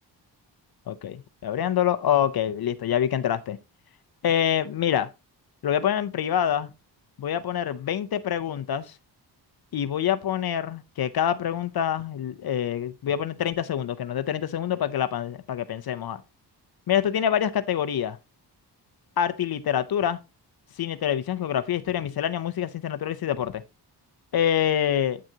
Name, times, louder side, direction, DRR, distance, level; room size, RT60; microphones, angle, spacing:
voice 1, 0.9-3.6 4.2-5.1 5.6-6.7 7.2-8.8 9.7-16.2 16.9-18.2 19.2-20.2 20.8-23.6 24.3-25.2, left 9 dB, 60° left, 0.6 m, -26 dB
8.7 x 6.2 x 2.8 m
wide cardioid pair, 110°, 43 cm